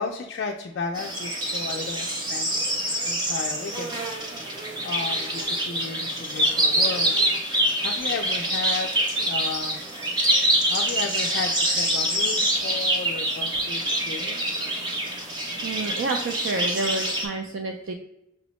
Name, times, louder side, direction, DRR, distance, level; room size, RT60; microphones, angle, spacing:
voice 1, 0.0-2.5 3.1-4.5 4.8-9.8 10.7-14.6, left 5 dB, 55° left, 2 dB, 0.3 m, -34 dB
sound 1, 0.9-17.3, right 1 dB, 20° right, 0.6 m, -25 dB
voice 2, 15.6-17.9, right 3 dB, 60° right, 4 dB, 0.3 m, -29 dB
6.0 x 2.0 x 2.9 m, 0.85 s
head